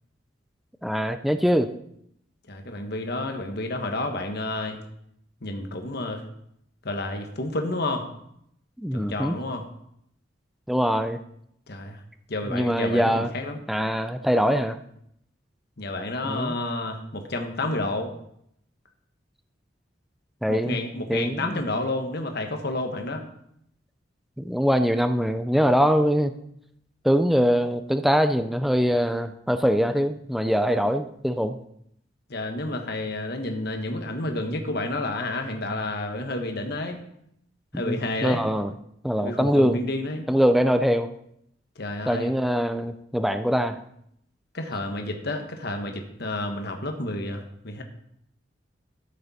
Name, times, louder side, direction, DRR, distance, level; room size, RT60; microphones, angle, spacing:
voice 1, 0.8-1.7 8.8-9.4 10.7-11.2 12.5-13.3 13.7-14.8 16.2-16.6 20.4-20.8 21.1-21.6 24.4-26.3 27.0-31.6 37.7-38.7 39.0-39.8 40.3-41.1 42.1-43.8, equal, ahead, 9 dB, 0.4 m, -23 dB
voice 2, 2.5-4.8 5.4-6.2 6.8-8.1 8.9-9.7 11.7-12.0 12.3-13.6 15.8-18.1 20.5-23.2 32.3-37.0 37.7-38.4 39.2-40.3 41.8-42.3 44.5-47.8, left 2 dB, 60° left, 5 dB, 1.3 m, -30 dB
13.0 x 6.6 x 4.2 m, 0.73 s
head